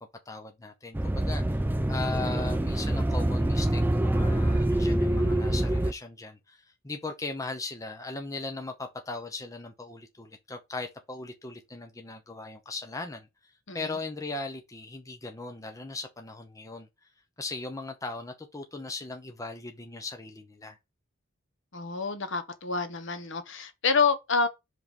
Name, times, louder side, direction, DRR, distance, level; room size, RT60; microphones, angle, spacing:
voice 1, 0.3-1.6 1.9-16.9 17.4-20.8, left 3 dB, 15° left, 0.7 m, -38 dB
sound 1, 0.9-5.9, right 1 dB, 10° right, 0.3 m, -25 dB
voice 2, 21.7-24.5, left 5 dB, 60° left, 0.9 m, -28 dB
5.0 x 3.8 x 5.3 m
head